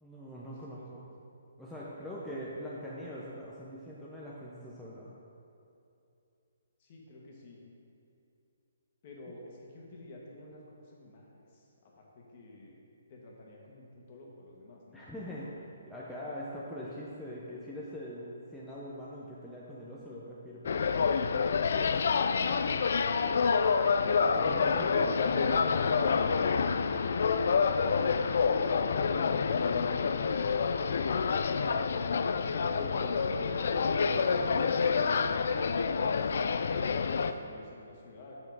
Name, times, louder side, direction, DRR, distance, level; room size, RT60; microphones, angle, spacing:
voice 1, 0.0-1.0 1.6-5.1 14.9-20.8 24.2-26.5 31.4-31.6 32.3-35.4, equal, ahead, -8 dB, 0.6 m, -43 dB
voice 2, 6.8-7.6 9.0-12.8 13.1-15.0 21.7-23.5 27.7-29.7 35.8-36.5 36.8-38.4, left 2 dB, 35° left, -2 dB, 1.5 m, -51 dB
sound 1, 20.7-37.3, left 5 dB, 60° left, 0.3 m, -28 dB
7.0 x 5.7 x 4.7 m, 2.7 s
hypercardioid pair, 160°, 0 cm